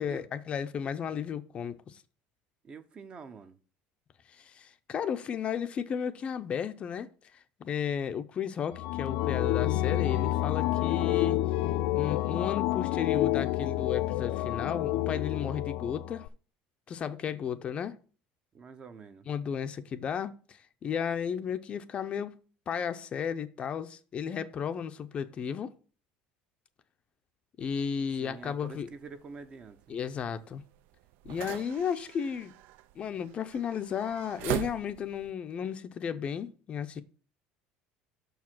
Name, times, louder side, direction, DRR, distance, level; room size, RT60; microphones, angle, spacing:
voice 1, 0.0-2.0 4.3-7.1 7.6-11.4 11.9-16.3 16.9-18.0 19.3-22.4 22.7-25.7 27.6-28.9 29.9-30.6 31.2-32.5 33.0-37.0, left 7 dB, 30° left, 0.5 m, -34 dB
voice 2, 2.6-3.6 18.5-19.3 28.2-30.0, right 5 dB, 30° right, 0.7 m, -47 dB
sound 1, 8.7-16.3, left 14 dB, 85° left, 0.4 m, -29 dB
sound 2, 27.6-35.3, right 14 dB, 65° right, 0.4 m, -42 dB
6.5 x 4.7 x 6.0 m
cardioid pair, 145°, 4 cm